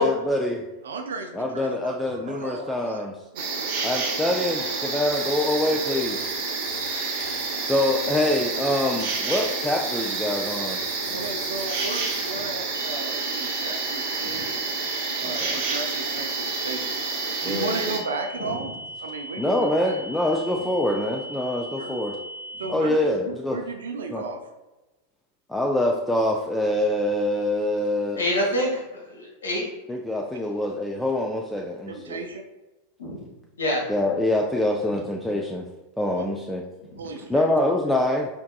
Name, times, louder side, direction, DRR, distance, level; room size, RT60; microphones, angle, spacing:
voice 1, 0.0-0.6 1.3-3.2 3.8-6.3 7.6-10.8 15.4-15.6 17.4-17.9 19.4-22.2 22.7-23.6 24.1-24.2 25.5-28.2 29.9-32.2 33.9-35.7 36.0-36.6 37.3-38.3, left 1 dB, 5° left, 0 dB, 0.4 m, -25 dB
voice 2, 0.8-3.1 3.3-3.7 6.1-6.3 11.1-14.6 15.2-18.7 19.0-20.0 21.8-22.0 22.6-23.0 23.2-24.5 31.9-32.4 36.1-36.3 37.0-37.5, right 3 dB, 65° right, 4 dB, 0.4 m, -35 dB
sound 1, 3.4-18.0, right 4 dB, 45° right, 0.8 m, -29 dB
sound 2, 5.1-12.3, left 4 dB, 40° left, 0.8 m, -44 dB
sound 3, 12.7-22.7, equal, 85° left, 0.6 m, -38 dB
voice 3, 28.2-29.6 33.0-33.2 33.6-33.8, equal, 70° left, -3 dB, 1.3 m, -26 dB
4.5 x 3.5 x 2.3 m, 1.1 s
figure-of-eight pair, 90°, 0 cm